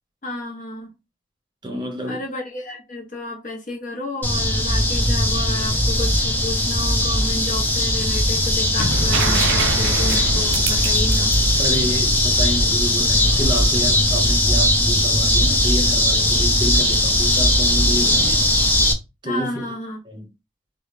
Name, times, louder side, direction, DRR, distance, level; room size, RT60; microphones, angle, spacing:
voice 1, 0.2-0.9 2.0-11.3 19.2-20.0, left 2 dB, 40° left, 1.0 m, -31 dB
voice 2, 1.6-2.2 11.6-18.5 19.2-19.7 20.1-20.3, equal, 25° right, 0.8 m, -29 dB
sound 1, 4.2-18.9, left 1 dB, 10° left, 0.5 m, -19 dB
Explosion, 8.8-14.8, left 1 dB, 75° left, 0.5 m, -29 dB
sound 2, 9.1-12.8 14.7-14.8, right 9 dB, 70° right, 0.3 m, -28 dB
3.0 x 2.4 x 3.2 m
head